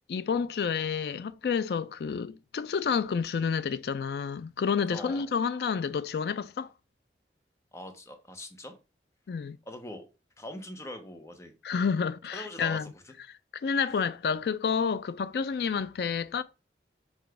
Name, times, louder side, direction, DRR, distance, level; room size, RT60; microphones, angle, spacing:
voice 1, 0.1-6.7 9.3-9.6 11.6-12.9 13.6-16.4, left 6 dB, 65° left, 0.3 m, -29 dB
voice 2, 4.9-5.3 7.7-8.8 9.7-10.1 10.4-11.5 12.3-13.1, left 1 dB, 15° left, 0.7 m, -42 dB
4.8 x 2.3 x 4.6 m
head